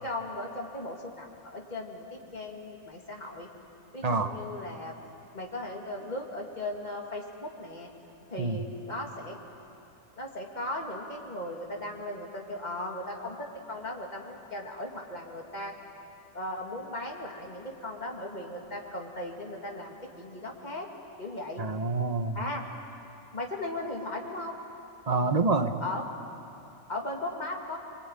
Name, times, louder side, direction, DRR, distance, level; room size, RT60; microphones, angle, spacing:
voice 1, 0.0-3.5 3.9-5.0 5.3-7.9 8.3-9.4 10.2-15.7 16.3-20.9 21.2-21.6 22.3-22.7 23.3-24.6 25.8-26.0 26.9-27.8, left 1 dB, 30° left, 0 dB, 2.6 m, -37 dB
voice 2, 4.0-4.3 8.4-8.6 21.6-22.4 25.1-25.7, right 3 dB, 30° right, 7 dB, 1.1 m, -27 dB
24.5 x 24.0 x 9.2 m, 2.8 s
omnidirectional pair, 1.6 m